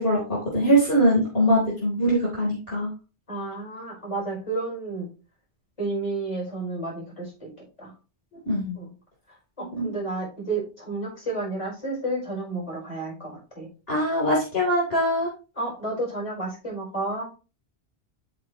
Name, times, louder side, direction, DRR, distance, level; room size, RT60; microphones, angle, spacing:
voice 1, 0.0-2.9 8.5-8.8 9.7-9.9 13.9-15.3, equal, 60° left, -4 dB, 4.0 m, -22 dB
voice 2, 3.3-5.1 5.8-7.5 7.8-7.9 8.8-8.9 9.8-13.7 15.5-17.3, right 2 dB, 30° left, -2 dB, 4.9 m, -31 dB
12.5 x 4.2 x 3.1 m, 0.33 s
omnidirectional pair, 1.1 m